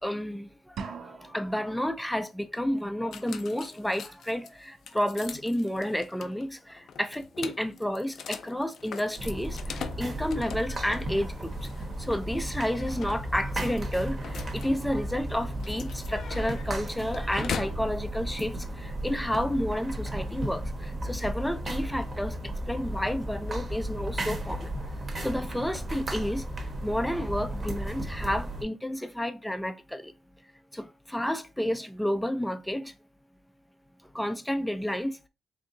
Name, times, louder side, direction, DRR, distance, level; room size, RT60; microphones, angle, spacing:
voice 1, 0.0-11.7 12.0-24.7 25.2-30.1 30.7-32.9 34.1-35.3, equal, 5° left, 0.4 m, -31 dB
sound 1, 0.8-1.7, right 6 dB, 80° right, 0.5 m, -40 dB
sound 2, 3.1-17.9, left 7 dB, 70° left, 0.4 m, -42 dB
sound 3, 9.2-28.6, right 1 dB, 35° right, 0.9 m, -34 dB
3.5 x 2.7 x 3.9 m
cardioid pair, 130°, 0 cm